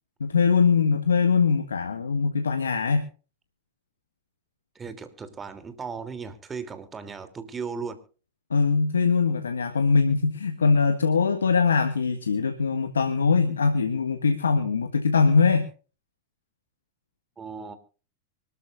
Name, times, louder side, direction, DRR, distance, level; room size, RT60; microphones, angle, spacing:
voice 1, 0.2-3.1 8.5-15.7, left 5 dB, 85° left, 1.5 m, -22 dB
voice 2, 4.7-8.0 17.4-17.8, right 5 dB, 20° right, 3.0 m, -36 dB
25.0 x 13.5 x 2.5 m
hypercardioid pair, 100°, 0 cm